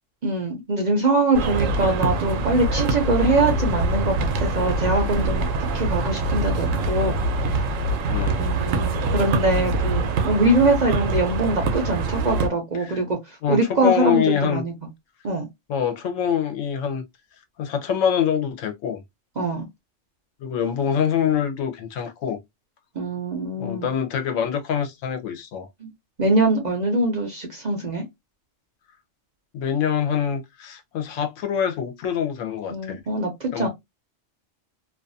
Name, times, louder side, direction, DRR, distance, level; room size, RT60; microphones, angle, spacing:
voice 1, 0.2-5.5 5.7-7.2 7.5-7.6 8.3-14.7 15.2-15.4 19.4-19.6 22.9-23.9 25.8-25.9 26.2-28.0 32.7-33.7, right 2 dB, 50° right, 0.5 m, -23 dB
sound 1, 1.3-12.5, right 2 dB, 85° right, 1.0 m, -24 dB
voice 2, 8.1-8.4 12.7-13.0 13.4-14.6 15.7-17.0 17.6-19.0 20.4-22.4 23.6-25.7 29.5-33.0 33.5-33.7, left 8 dB, 80° left, 1.0 m, -25 dB
2.5 x 2.3 x 2.5 m
omnidirectional pair, 1.3 m